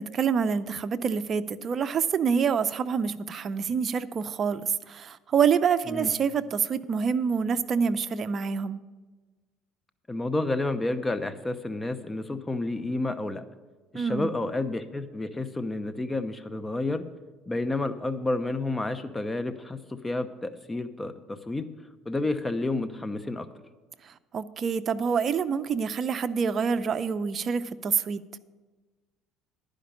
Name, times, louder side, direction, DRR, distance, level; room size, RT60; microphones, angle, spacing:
voice 1, 0.0-8.8 13.9-14.3 24.1-28.2, right 6 dB, 40° right, 11 dB, 0.5 m, -27 dB
voice 2, 10.1-13.4 13.9-17.0 17.5-21.7 22.1-23.5, left 2 dB, 15° left, 11 dB, 0.7 m, -30 dB
11.5 x 5.1 x 8.4 m, 1.3 s
supercardioid pair, 100°, 0 cm